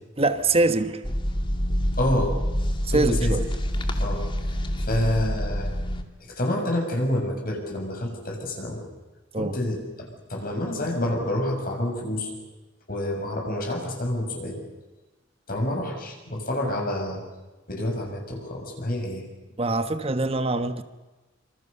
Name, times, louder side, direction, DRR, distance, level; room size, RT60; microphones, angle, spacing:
voice 1, 0.2-1.0 2.8-3.4 9.3-9.5 19.6-20.8, right 2 dB, 30° right, 10 dB, 1.2 m, -24 dB
sound 1, 1.0-6.0, equal, 25° left, 2.4 m, -27 dB
voice 2, 2.0-2.4 2.9-3.4 4.0-4.2 4.8-5.7 6.4-8.8 9.4-12.3 12.9-14.6 15.5-17.2 17.7-19.3, left 1 dB, 50° left, 1 dB, 7.0 m, -28 dB
27.0 x 26.5 x 6.8 m, 1.1 s
head